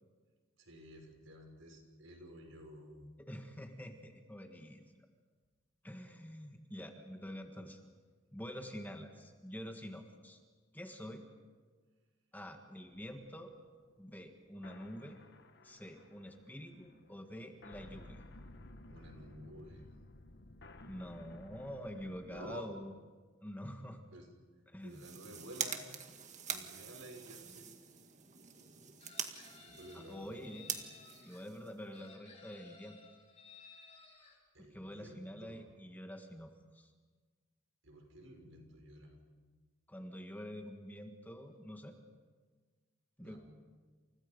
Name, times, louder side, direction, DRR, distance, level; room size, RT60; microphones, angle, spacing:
voice 1, 0.6-3.1 18.8-19.9 22.3-22.7 24.1-24.3 24.8-25.9 26.4-27.8 29.6-30.4 34.5-35.6 37.8-39.2 43.2-43.4, equal, 75° right, 3 dB, 5.8 m, -52 dB
voice 2, 3.2-4.8 5.8-7.8 8.3-10.4 10.7-11.3 12.3-13.5 14.0-15.2 15.6-18.2 20.9-22.9 23.4-24.0 24.7-25.1 29.9-30.7 31.2-33.0 34.6-36.9 39.9-42.0 43.2-43.4, equal, 10° left, 4 dB, 1.8 m, -47 dB
sound 1, 12.9-22.6, left 2 dB, 55° left, 1.4 m, -56 dB
sound 2, 24.8-32.1, right 7 dB, 35° right, 1.9 m, -45 dB
Chicken rooster, 29.0-31.4 31.9-34.4, left 4 dB, 30° left, 5.2 m, -58 dB
29.5 x 29.0 x 5.3 m, 1.4 s
head